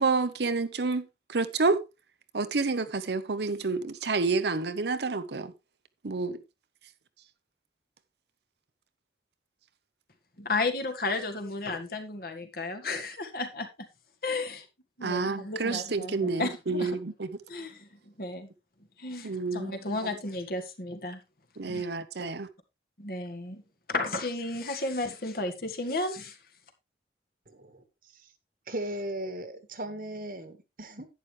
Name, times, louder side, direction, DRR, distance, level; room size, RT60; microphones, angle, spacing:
voice 1, 0.0-1.8 2.3-5.5 6.0-6.4 15.0-17.3 19.2-19.7 20.0-20.1 21.6-22.5, right 3 dB, 70° right, 0.8 m, -29 dB
voice 2, 10.4-13.9 14.2-14.6 15.0-16.9 17.5-18.5 19.0-21.2 21.6-21.8 22.2-22.3 23.0-23.6 23.9-26.4, left 2 dB, 55° left, 1.7 m, -33 dB
voice 3, 27.5-27.8 28.1-28.3 28.7-31.1, right 1 dB, 50° right, 1.5 m, -37 dB
11.0 x 9.2 x 3.2 m
head